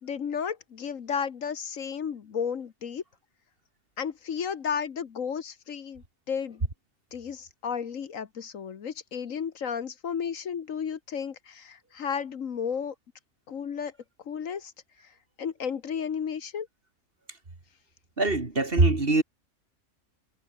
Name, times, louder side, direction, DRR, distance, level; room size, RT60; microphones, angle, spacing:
voice 1, 0.0-3.0 4.0-6.7 7.1-12.9 13.5-13.9 14.2-14.7 15.0-15.1 15.4-16.7, left 7 dB, 65° left, 1.5 m, -33 dB
voice 2, 18.2-19.2, right 3 dB, 40° right, 3.0 m, -22 dB
omnidirectional pair, 1.5 m